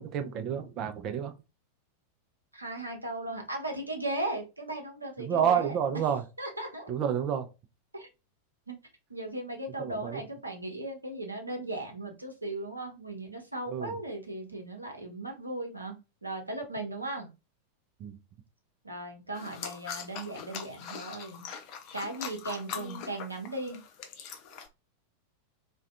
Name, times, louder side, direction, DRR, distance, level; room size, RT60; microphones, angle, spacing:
voice 1, 0.0-1.3 5.2-6.2 6.9-7.5 9.8-10.2 13.7-14.0 18.0-18.2, right 8 dB, 35° right, 0.4 m, -29 dB
voice 2, 2.5-5.8 6.4-6.9 7.9-8.1 8.7-8.8 9.1-17.3 18.8-21.4 21.9-23.8, right 2 dB, 85° right, 0.7 m, -37 dB
sound 1, 19.4-24.7, left 7 dB, 40° left, 0.5 m, -42 dB
2.5 x 2.2 x 2.4 m
figure-of-eight pair, 90°, 0 cm